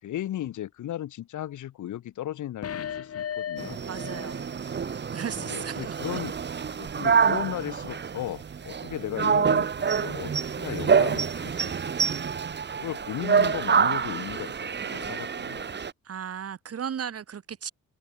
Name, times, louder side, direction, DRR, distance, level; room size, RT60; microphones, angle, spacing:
voice 1, 0.0-3.8 5.4-6.3 6.7-12.2 12.8-15.8, left 12 dB, 75° left, 4.6 m, -36 dB
sound 1, 2.6-4.5 4.8-4.9, left 9 dB, 50° left, 1.9 m, -35 dB
sound 2, 3.6-15.9, right 6 dB, 35° right, 1.5 m, -27 dB
voice 2, 3.9-4.4 5.1-6.2 16.0-17.7, right 8 dB, 50° right, 3.9 m, -35 dB
cardioid pair, 90°, 30 cm